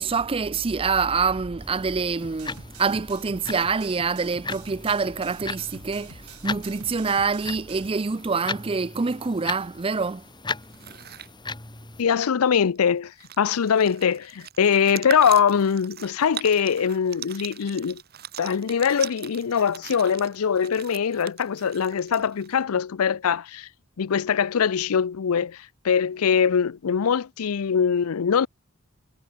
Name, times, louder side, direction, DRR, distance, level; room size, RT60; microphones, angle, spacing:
voice 1, 0.0-10.2, right 4 dB, 25° right, 0.5 m, -26 dB
sound 1, 1.6-12.0, left 4 dB, 20° left, 2.2 m, -38 dB
sound 2, 2.2-7.9, right 3 dB, 85° right, 6.1 m, -46 dB
sound 3, 10.6-11.3 12.7-12.8 13.1-22.6, right 10 dB, 45° right, 1.5 m, -40 dB
voice 2, 12.0-18.0 18.4-23.7 24.0-28.5, left 7 dB, 75° left, 0.5 m, -22 dB
head